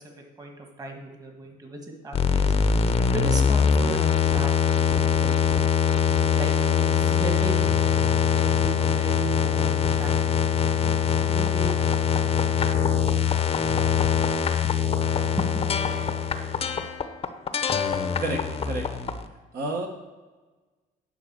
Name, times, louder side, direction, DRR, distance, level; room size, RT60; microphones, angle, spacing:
voice 1, 0.0-2.5 3.1-5.5 6.4-7.7 8.3-10.3 10.8-13.7 14.5-14.7 15.4-15.6, right 2 dB, 20° right, 2 dB, 1.6 m, -37 dB
sound 1, 2.1-19.3, left 7 dB, 35° left, 0.7 m, -23 dB
voice 2, 18.2-18.9 19.5-19.9, right 2 dB, 60° right, 1 dB, 1.2 m, -30 dB
9.8 x 3.7 x 7.3 m, 1.3 s
cardioid pair, 110°, 17 cm